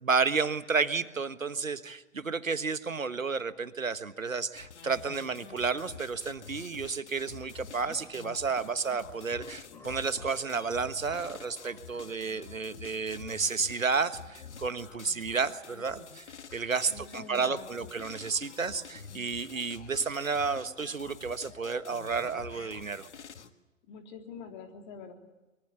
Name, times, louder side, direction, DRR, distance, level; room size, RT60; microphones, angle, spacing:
voice 1, 0.0-16.2 16.5-23.1, right 5 dB, 75° right, 13 dB, 1.5 m, -31 dB
sound 1, 4.6-23.5, left 6 dB, 55° left, 1.8 m, -48 dB
sound 2, 7.7-12.4, left 3 dB, 5° left, 1.6 m, -54 dB
voice 2, 16.9-17.9 23.9-25.1, left 5 dB, 35° left, 4 dB, 3.6 m, -45 dB
24.0 x 23.5 x 8.5 m, 1.1 s
figure-of-eight pair, 120°, 40 cm